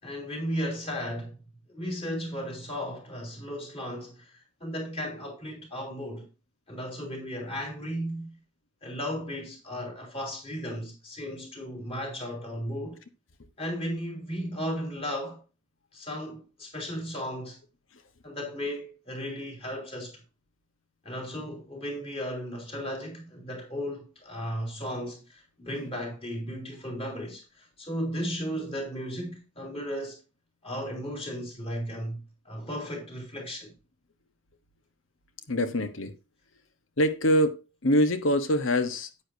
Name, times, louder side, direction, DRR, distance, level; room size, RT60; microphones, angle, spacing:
voice 1, 0.0-1.4 1.7-6.3 6.7-8.4 8.8-13.0 13.6-15.4 15.9-17.6 18.2-20.2 21.0-30.2 30.6-33.7, equal, 30° left, 3.7 m, -35 dB
voice 2, 35.5-36.1 37.0-39.2, equal, 80° left, 1.2 m, -25 dB
9.9 x 8.7 x 2.7 m
head